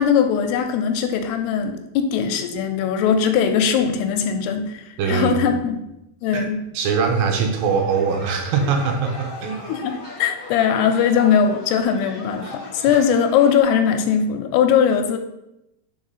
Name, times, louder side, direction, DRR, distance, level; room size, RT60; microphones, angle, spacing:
voice 1, 0.0-5.8 6.2-6.6 9.7-15.2, left 7 dB, 80° left, 6 dB, 2.5 m, -20 dB
voice 2, 5.0-5.4 6.3-6.5 6.7-9.6, right 5 dB, 80° right, 3 dB, 2.1 m, -22 dB
sound 1, 7.6-13.6, left 1 dB, 30° right, 2.0 m, -38 dB
5.0 x 4.8 x 5.5 m, 0.89 s
omnidirectional pair, 4.9 m